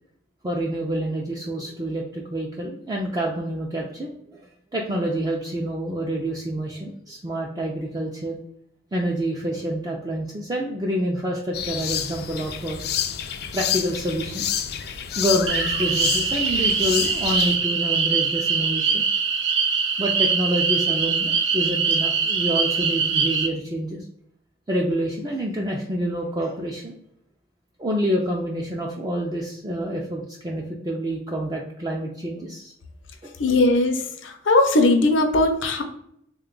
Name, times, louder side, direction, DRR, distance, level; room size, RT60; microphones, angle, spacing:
voice 1, 0.4-8.4 8.9-12.8 13.5-14.5 15.2-19.0 20.0-24.0 24.7-26.9 27.8-32.7 33.2-33.3, equal, 20° right, -2 dB, 0.4 m, -27 dB
sound 1, 11.5-17.6, left 9 dB, 55° left, 0.3 m, -29 dB
sound 2, 15.5-23.5, right 5 dB, 70° right, 0.6 m, -23 dB
voice 2, 33.4-35.8, left 2 dB, 85° left, 5 dB, 0.6 m, -19 dB
3.6 x 2.3 x 3.7 m, 0.72 s
head